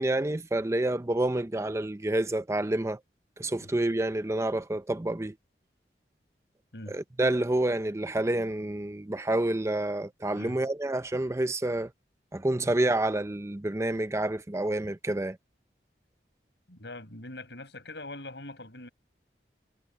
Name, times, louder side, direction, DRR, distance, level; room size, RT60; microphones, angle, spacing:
voice 1, 0.0-3.0 3.4-5.3 6.9-11.9 12.3-15.4, right 1 dB, 15° right, 0.5 m, -28 dB
voice 2, 16.7-18.9, left 2 dB, 75° left, 7.6 m, -43 dB
head